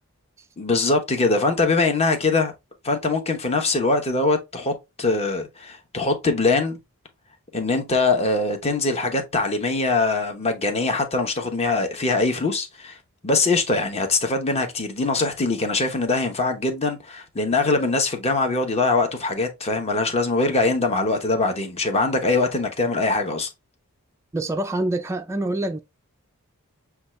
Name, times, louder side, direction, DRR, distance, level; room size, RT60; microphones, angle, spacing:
voice 1, 0.6-2.5 2.8-6.8 7.5-13.0 13.2-23.5, left 3 dB, 30° left, 0.9 m, -22 dB
voice 2, 24.3-25.8, right 1 dB, 10° right, 0.3 m, -26 dB
7.0 x 2.3 x 3.1 m
head